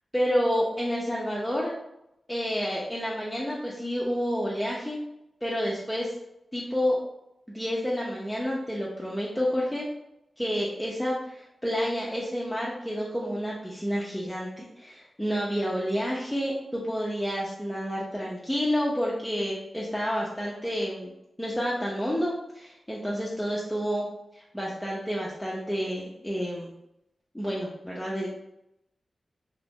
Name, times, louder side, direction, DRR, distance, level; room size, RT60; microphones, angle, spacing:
voice 1, 0.1-1.7 2.3-5.0 5.4-6.1 6.5-7.0 7.5-9.9 10.4-21.1 21.4-24.1 24.3-26.7 27.3-28.3, equal, 5° left, -5 dB, 0.5 m, -29 dB
2.9 x 2.5 x 3.5 m, 0.84 s
wide cardioid pair, 80°, 0 cm